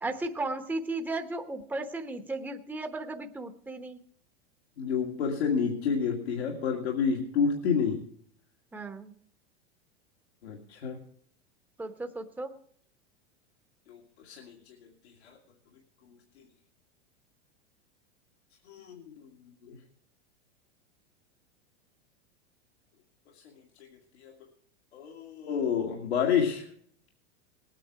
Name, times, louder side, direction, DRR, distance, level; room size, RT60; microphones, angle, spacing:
voice 1, 0.0-4.0 8.7-9.1 11.8-12.5, right 2 dB, 5° right, 6 dB, 1.0 m, -35 dB
voice 2, 4.8-8.1 10.4-11.0 13.9-14.8 15.2-15.4 18.7-19.1 19.5-19.8 23.3-23.4 24.2-24.3 24.9-26.7, left 6 dB, 80° left, 1 dB, 2.1 m, -29 dB
18.5 x 9.0 x 4.7 m, 0.62 s
hypercardioid pair, 115°, 32 cm